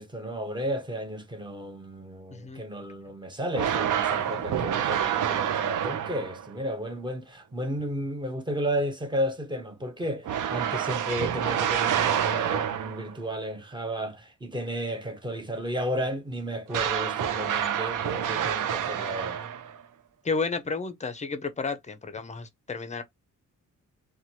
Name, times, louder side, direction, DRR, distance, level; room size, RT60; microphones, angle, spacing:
voice 1, 0.0-19.4, equal, 15° right, 0.7 m, -33 dB
voice 2, 2.3-2.6 4.3-4.4 20.2-23.0, left 4 dB, 20° left, 0.5 m, -32 dB
sound 1, 3.5-6.5 10.3-13.2 16.7-19.8, right 9 dB, 70° right, 0.5 m, -28 dB
2.8 x 2.3 x 2.8 m
wide cardioid pair, 120°, 32 cm